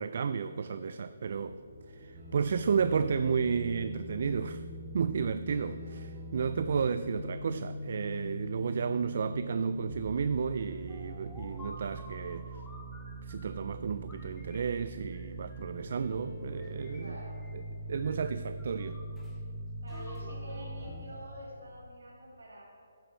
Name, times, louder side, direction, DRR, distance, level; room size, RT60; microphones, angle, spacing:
voice 1, 0.0-1.6 1.9-4.6 4.9-12.6 13.2-17.2 17.5-17.6 17.9-19.0, right 6 dB, 55° right, 0.3 m, -32 dB
sound 1, 1.2-19.1, equal, 85° left, 1.9 m, -56 dB
sound 2, 2.1-21.0, right 1 dB, 25° right, 2.3 m, -42 dB
sound 3, 10.9-13.6 14.1-15.9 16.5-17.7 17.9-19.4 19.9-21.7, left 1 dB, 10° left, 1.1 m, -54 dB
voice 2, 17.0-17.4 19.8-22.6, equal, 85° right, 2.3 m, -47 dB
12.0 x 7.4 x 4.4 m
hypercardioid pair, 160°, 0 cm